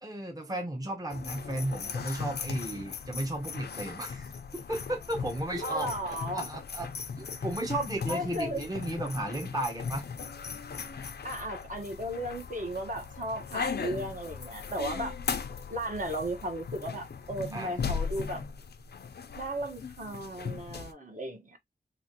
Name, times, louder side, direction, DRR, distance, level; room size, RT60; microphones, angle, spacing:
voice 1, 0.0-4.2 4.5-6.9 7.2-10.0 17.5-17.8, right 1 dB, 20° right, 0.8 m, -34 dB
sound 1, 1.1-20.9, left 6 dB, 75° left, 0.5 m, -38 dB
voice 2, 5.6-6.5 8.1-8.6 11.2-15.1 15.7-18.4 19.4-21.6, right 1 dB, 50° right, 1.1 m, -35 dB
3.1 x 2.9 x 2.8 m
wide cardioid pair, 105°, 17 cm